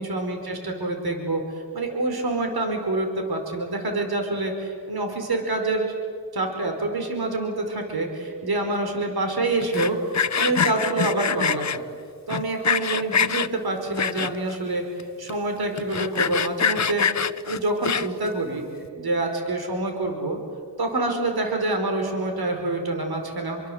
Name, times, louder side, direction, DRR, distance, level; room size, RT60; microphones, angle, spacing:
voice 1, 0.0-1.4 1.7-5.9 6.3-10.0 10.4-11.8 12.3-14.8 15.2-17.1 17.5-18.6 19.0-20.4 20.8-23.6, right 2 dB, 65° right, 4 dB, 4.9 m, -26 dB
Sawing, 9.6-11.8 12.3-13.5 14.0-14.6 15.0-15.1 15.3-15.4 15.8-18.3, left 7 dB, 45° left, 0.9 m, -24 dB
28.0 x 23.5 x 8.0 m, 2.1 s
cardioid pair, 60°, 41 cm